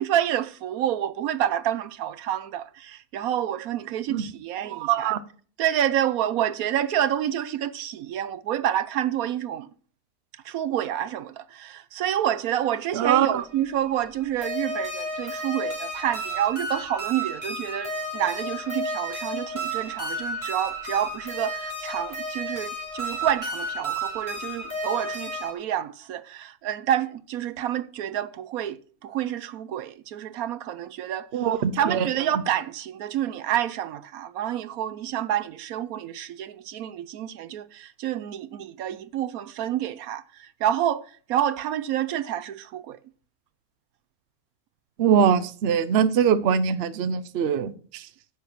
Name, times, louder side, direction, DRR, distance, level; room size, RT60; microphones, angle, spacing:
voice 1, 0.0-5.1 5.6-9.7 10.4-31.3 31.8-43.0, right 11 dB, 75° right, 1.1 m, -28 dB
voice 2, 4.6-5.2 12.9-13.4 31.3-32.1 32.3-32.4 45.0-48.1, right 8 dB, 55° right, 0.8 m, -23 dB
sound 1, 12.8-25.5, right 1 dB, 10° right, 4.1 m, -33 dB
10.5 x 7.1 x 5.8 m
omnidirectional pair, 1.6 m